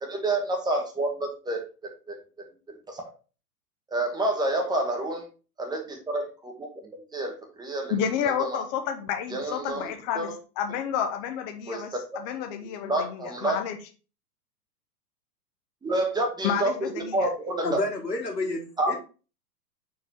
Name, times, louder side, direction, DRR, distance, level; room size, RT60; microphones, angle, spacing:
voice 1, 0.0-2.5 2.9-3.0 3.9-5.3 5.6-6.7 7.1-7.9 8.2-8.6 9.3-9.8 10.1-10.4 11.7-11.8 12.8-13.6 15.8-17.8 18.8-19.0, right 2 dB, 10° right, 1 dB, 1.0 m, -29 dB
voice 2, 7.9-13.8 16.4-17.3, left 8 dB, 25° left, 6 dB, 0.6 m, -30 dB
voice 3, 17.6-19.0, left 2 dB, 85° left, 1 dB, 1.8 m, -30 dB
5.5 x 4.6 x 4.3 m, 0.35 s
figure-of-eight pair, 105°, 48 cm